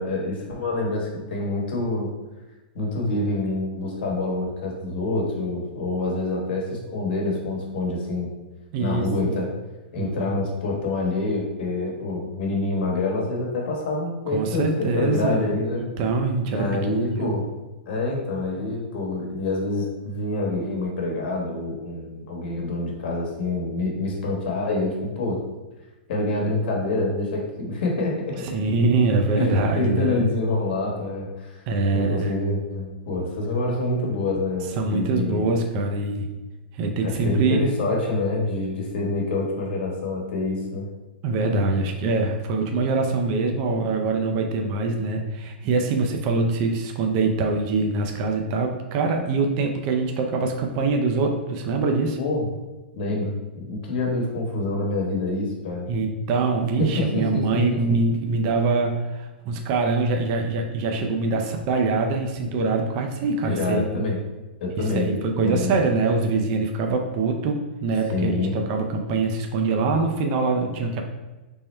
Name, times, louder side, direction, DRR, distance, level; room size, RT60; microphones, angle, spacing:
voice 1, 0.0-2.1 2.7-8.3 8.8-9.5 9.9-15.9 16.5-17.5 17.9-25.4 26.1-28.3 29.4-31.6 31.9-35.5 37.0-40.9 52.2-52.5 52.9-55.9 56.8-57.8 63.4-64.2 64.6-65.8 68.1-68.5, left 2 dB, 65° left, -1 dB, 1.1 m, -26 dB
voice 2, 8.7-9.4 10.0-10.3 14.3-17.3 28.4-30.2 31.7-32.3 34.8-36.3 36.7-37.7 41.2-52.2 55.9-64.0 64.8-71.0, right 3 dB, 40° right, 3 dB, 0.4 m, -24 dB
3.5 x 2.1 x 4.2 m, 1.1 s
hypercardioid pair, 135°, 6 cm